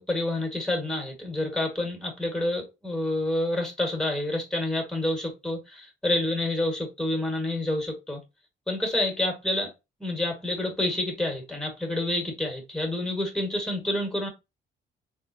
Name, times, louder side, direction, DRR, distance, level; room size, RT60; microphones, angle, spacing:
voice 1, 0.0-8.2 8.7-9.7 10.0-14.3, left 1 dB, 5° left, 1.4 m, -28 dB
3.5 x 2.5 x 2.6 m
cardioid pair, 90°, 20 cm